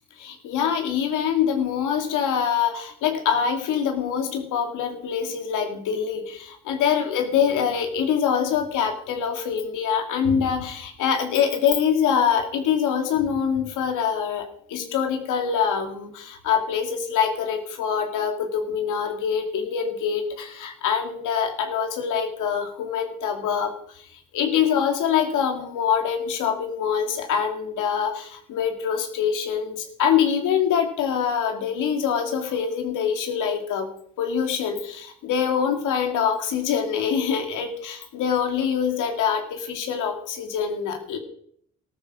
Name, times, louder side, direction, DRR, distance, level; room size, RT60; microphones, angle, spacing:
voice 1, 0.2-23.7 24.3-33.9 34.2-41.2, left 7 dB, 85° left, 5 dB, 2.4 m, -24 dB
14.5 x 12.5 x 4.9 m, 0.65 s
cardioid pair, 90°, 30 cm